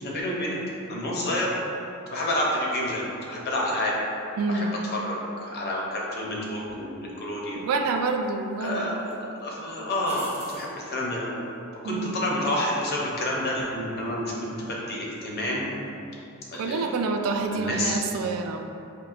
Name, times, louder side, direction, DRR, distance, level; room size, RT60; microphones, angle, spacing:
voice 1, 0.0-0.6 0.9-1.5 2.1-3.9 4.5-4.6 4.9-5.2 5.5-7.6 8.6-11.3 11.8-15.7 16.5-17.0 17.5-18.0, left 1 dB, 50° left, -3 dB, 0.6 m, -29 dB
voice 2, 4.4-4.7 7.5-8.9 11.8-12.3 16.5-18.7, right 3 dB, 75° right, 5 dB, 0.3 m, -27 dB
sound 1, 6.7-6.8 8.0-8.6 9.0-9.1 10.0-10.7 13.8-14.2, right 2 dB, 30° right, 0.5 m, -43 dB
4.5 x 2.7 x 2.4 m, 2.7 s
head